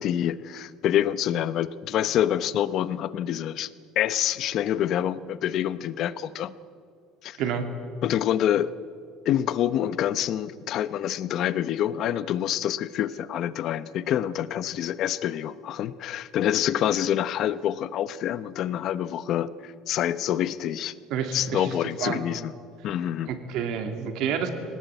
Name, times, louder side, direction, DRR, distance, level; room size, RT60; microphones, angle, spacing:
voice 1, 0.0-3.7 4.0-6.5 7.2-7.4 8.0-8.7 9.2-20.9 21.3-22.5 22.8-23.3, left 11 dB, 45° left, 16 dB, 0.7 m, -26 dB
voice 2, 21.1-21.7 22.0-22.2 23.3-24.5, right 7 dB, 55° right, 7 dB, 2.5 m, -29 dB
21.5 x 18.5 x 9.2 m, 2.2 s
cardioid pair, 170°, 0 cm